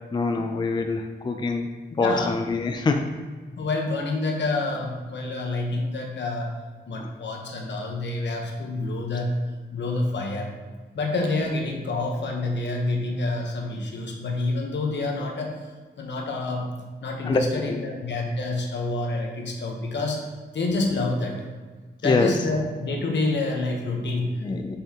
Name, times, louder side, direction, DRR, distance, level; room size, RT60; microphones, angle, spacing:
voice 1, 0.1-1.7 2.0-3.0 17.2-17.4 17.7-17.8 22.0-22.3 24.4-24.8, left 3 dB, 25° left, 5 dB, 0.3 m, -24 dB
voice 2, 2.0-2.3 3.5-6.5 6.9-9.4 9.7-10.5 10.9-15.5 16.0-16.7 17.0-20.2 20.5-21.5 22.0-24.5, left 2 dB, 75° left, 1 dB, 1.0 m, -28 dB
7.1 x 5.5 x 2.9 m, 1.4 s
wide cardioid pair, 175°, 19 cm